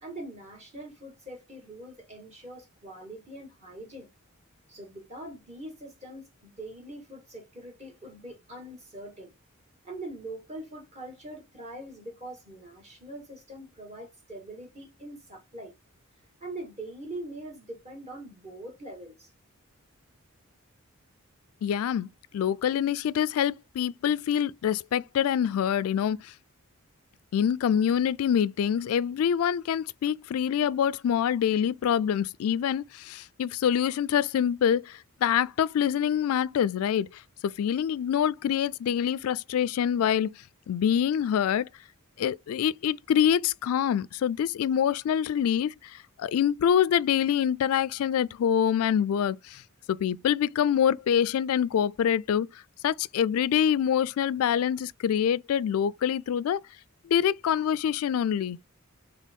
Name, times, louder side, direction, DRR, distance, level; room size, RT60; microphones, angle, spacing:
voice 1, 0.0-4.1 4.7-9.3 9.8-15.7 16.4-19.3, right 1 dB, 30° right, 2.0 m, -43 dB
voice 2, 21.6-26.3 27.3-37.2 37.6-40.4 40.7-41.7 42.2-49.6 49.9-56.6 57.0-58.6, left 9 dB, 80° left, 0.3 m, -25 dB
4.1 x 3.3 x 3.6 m
head